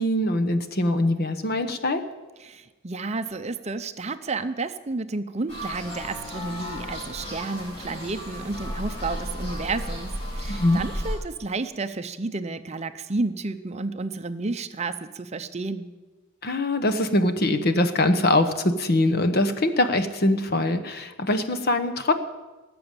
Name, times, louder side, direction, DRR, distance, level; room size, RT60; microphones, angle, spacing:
voice 1, 0.0-2.0 10.5-10.8 16.4-22.1, left 1 dB, 50° left, 9 dB, 1.0 m, -23 dB
voice 2, 2.4-15.9, right 3 dB, 30° right, 9 dB, 0.6 m, -31 dB
sound 1, 5.5-11.2, equal, 30° left, 6.1 m, -34 dB
18.5 x 7.0 x 8.9 m, 1.2 s
head